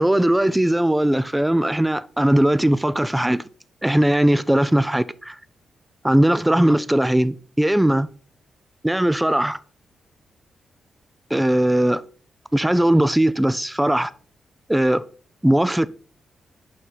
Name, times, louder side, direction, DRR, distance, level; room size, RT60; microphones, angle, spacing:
voice 1, 0.0-3.4 3.8-5.4 6.0-8.1 8.8-9.6 11.3-12.0 12.5-14.1 14.7-15.0 15.4-15.9, right 1 dB, 10° right, 0.6 m, -19 dB
6.5 x 5.5 x 4.5 m
supercardioid pair, 55°, 0 cm